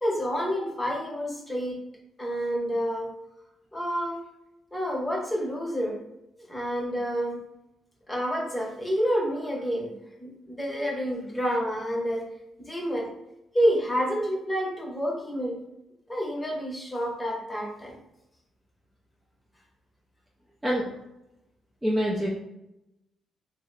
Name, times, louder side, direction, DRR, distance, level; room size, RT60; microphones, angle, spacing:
voice 1, 0.0-1.8 2.2-3.1 3.7-4.2 4.7-6.0 6.5-7.4 8.1-9.9 10.2-12.3 12.7-13.1 13.5-15.6 16.1-18.0, equal, 15° left, -2 dB, 0.9 m, -28 dB
voice 2, 21.8-22.3, equal, 10° right, -4 dB, 0.5 m, -25 dB
2.7 x 2.1 x 3.8 m, 0.89 s
cardioid pair, 90°, 0 cm